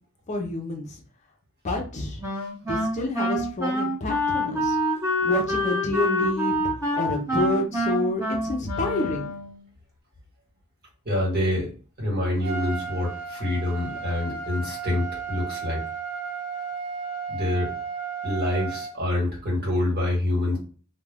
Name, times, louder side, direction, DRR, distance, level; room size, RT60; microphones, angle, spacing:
voice 1, 0.3-1.0 1.6-2.2 2.7-6.5 6.9-9.3, left 2 dB, 30° left, 2 dB, 0.5 m, -29 dB
Wind instrument woodwind instrument, 2.2-9.6, equal, 15° right, 0.8 m, -26 dB
voice 2, 11.0-11.7 12.0-15.8 17.3-17.7 18.2-20.6, left 1 dB, 45° right, -4 dB, 1.3 m, -26 dB
Trumpet, 12.4-18.9, right 6 dB, 65° right, 0.8 m, -34 dB
2.3 x 2.1 x 3.3 m, 0.37 s
head